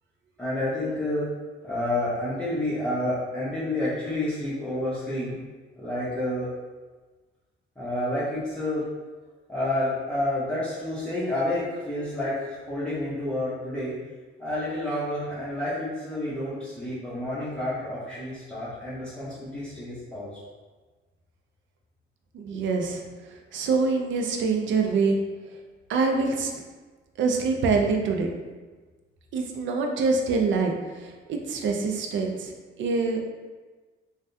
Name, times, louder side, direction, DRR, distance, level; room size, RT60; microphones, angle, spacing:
voice 1, 0.4-1.3 1.6-5.4 5.8-6.5 7.8-8.9 9.5-14.0 14.4-20.4, left 1 dB, 5° left, -12 dB, 0.9 m, -29 dB
voice 2, 22.3-23.0 23.3-25.2 25.9-26.5 27.2-28.3 29.3-33.2, right 4 dB, 70° right, 3 dB, 0.5 m, -25 dB
3.4 x 2.2 x 2.6 m, 1.3 s
cardioid pair, 90°, 20 cm